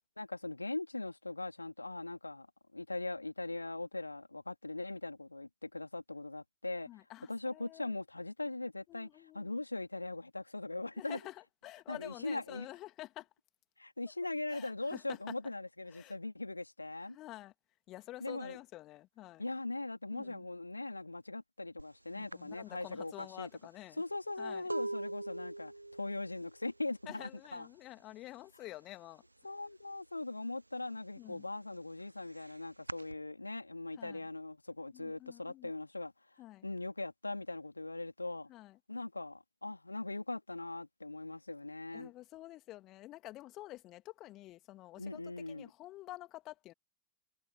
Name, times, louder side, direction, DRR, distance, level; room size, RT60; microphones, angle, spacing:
voice 1, 0.2-2.5 2.7-6.9 7.3-9.1 9.3-11.2 11.9-12.7 13.8-17.2 18.2-18.6 19.4-23.5 24.0-27.7 29.4-36.1 36.6-38.5 38.9-42.1 45.0-45.7, left 2 dB, 85° left, 3.0 m, -40 dB
voice 2, 6.9-7.9 8.9-9.6 10.9-13.3 14.5-15.3 15.9-16.2 17.1-17.5 17.9-19.4 20.1-20.5 22.1-24.0 24.4-24.7 27.0-29.2 31.2-31.4 34.0-34.3 34.9-35.7 36.4-36.7 38.5-38.8 41.9-45.2 45.5-46.7, left 16 dB, 35° left, 2.8 m, -49 dB
sound 1, 21.8-22.0 22.3-28.0 28.2-28.8 29.0-30.2 30.6-33.1, right 2 dB, 85° right, 0.6 m, -43 dB
figure-of-eight pair, 90°, 0 cm